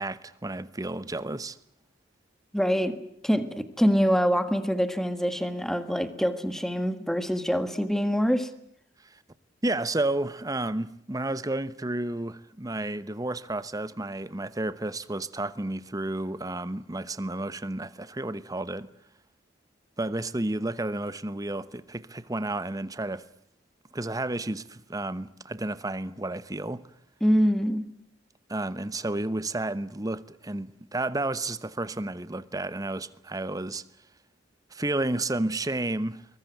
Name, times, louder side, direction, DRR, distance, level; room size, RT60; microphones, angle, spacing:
voice 1, 0.0-1.6 9.0-9.2 9.6-18.9 20.0-23.3 23.9-26.8 28.5-33.8 34.7-36.3, right 2 dB, 20° right, 1.0 m, -31 dB
voice 2, 2.5-3.0 3.2-8.5 27.2-27.8, equal, ahead, 1.7 m, -25 dB
22.5 x 21.0 x 9.2 m
head